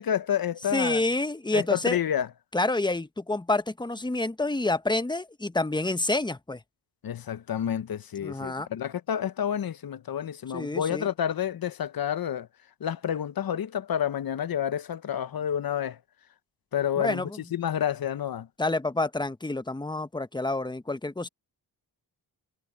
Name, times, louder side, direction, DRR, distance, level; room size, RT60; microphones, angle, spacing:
voice 1, 0.0-1.0 1.5-2.3 7.0-12.5 12.8-16.0 16.7-17.2 17.5-18.5, left 9 dB, 55° left, 0.9 m, -29 dB
voice 2, 0.7-2.0 2.5-6.6 8.2-8.7 10.5-11.1 17.0-17.4 18.6-21.3, left 2 dB, 10° left, 0.9 m, -28 dB
cardioid pair, 85°, 42 cm